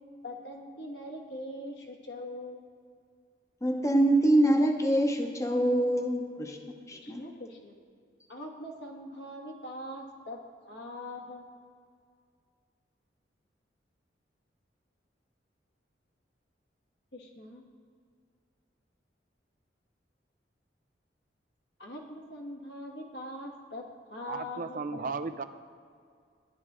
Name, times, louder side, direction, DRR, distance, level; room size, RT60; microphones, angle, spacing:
voice 1, 0.2-2.7 6.9-7.8 8.3-10.4 10.7-11.4 17.1-17.6 21.8-25.1, left 1 dB, 70° left, 0 dB, 1.8 m, -42 dB
voice 2, 3.6-6.6 6.9-7.2, right 1 dB, 15° left, 3 dB, 0.9 m, -25 dB
voice 3, 24.3-25.4, right 4 dB, 50° right, 10 dB, 0.5 m, -35 dB
12.0 x 11.0 x 3.7 m, 2.2 s
head